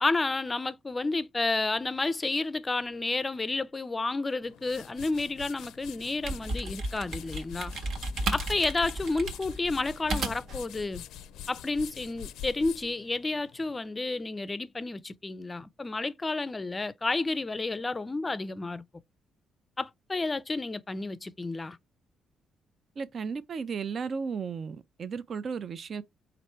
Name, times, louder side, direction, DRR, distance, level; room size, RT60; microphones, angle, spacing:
voice 1, 0.0-7.7 8.3-11.0 11.5-18.8 19.8-21.8, left 3 dB, 25° left, 0.4 m, -31 dB
sound 1, 4.4-13.8, left 9 dB, 85° left, 0.4 m, -45 dB
sound 2, 6.0-10.6, right 2 dB, 70° right, 1.2 m, -34 dB
voice 2, 23.0-26.0, right 5 dB, 50° right, 0.4 m, -34 dB
4.3 x 2.5 x 4.3 m
cardioid pair, 90°, 0 cm